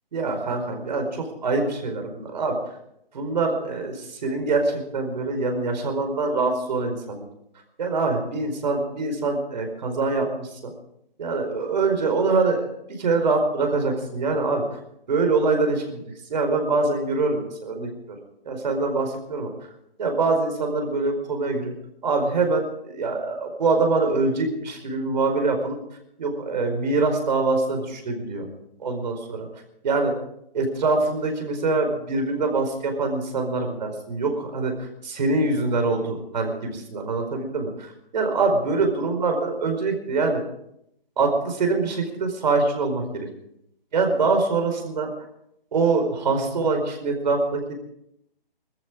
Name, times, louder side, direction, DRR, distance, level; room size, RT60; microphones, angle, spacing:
voice 1, 0.1-2.6 3.1-7.3 7.8-10.7 11.2-12.7 13.0-14.6 15.1-16.0 16.3-17.9 18.4-19.5 20.0-21.7 22.0-25.8 26.2-28.5 28.8-29.5 29.8-30.1 30.5-34.7 35.0-40.4 41.2-43.3 43.9-45.1 45.7-47.7, right 3 dB, 50° right, 4 dB, 4.7 m, -24 dB
20.5 x 14.0 x 4.9 m, 0.78 s
figure-of-eight pair, 150°, 29 cm